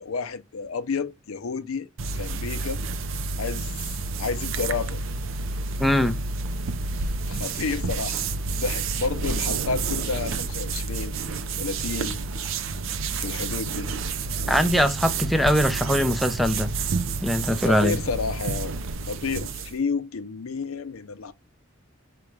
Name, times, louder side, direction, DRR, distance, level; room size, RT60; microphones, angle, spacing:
voice 1, 0.0-1.9 2.1-2.8 3.4-3.7 4.2-5.0 7.3-8.2 8.6-11.1 11.6-12.2 13.2-13.9 17.6-18.7 19.1-21.3, left 4 dB, 85° left, 0.6 m, -30 dB
sound 1, 2.0-19.8, right 4 dB, 70° right, 0.5 m, -29 dB
voice 2, 5.8-6.2 14.5-16.7 17.2-18.0, equal, ahead, 0.5 m, -22 dB
5.2 x 2.2 x 4.6 m
head